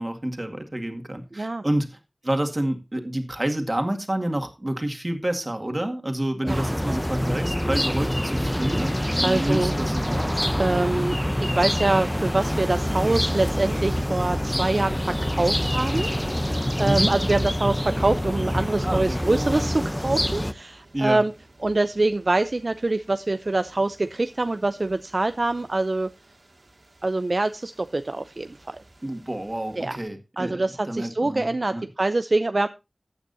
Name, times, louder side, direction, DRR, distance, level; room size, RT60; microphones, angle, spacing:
voice 1, 0.0-2.0 2.2-10.3 16.7-17.1 18.8-19.2 20.9-21.2 29.0-31.8, right 1 dB, 35° right, 6 dB, 2.0 m, -28 dB
sound 1, 6.5-20.5, equal, 10° left, 0.7 m, -25 dB
voice 2, 9.2-9.7 10.6-16.1 16.4-21.3 21.6-26.1 27.0-28.8 29.8-30.0 30.4-32.7, right 2 dB, 60° right, 11 dB, 0.5 m, -25 dB
sound 2, 13.5-30.1, right 2 dB, 75° right, 2.3 m, -50 dB
14.5 x 8.8 x 2.7 m, 0.26 s
wide cardioid pair, 60°, 0 cm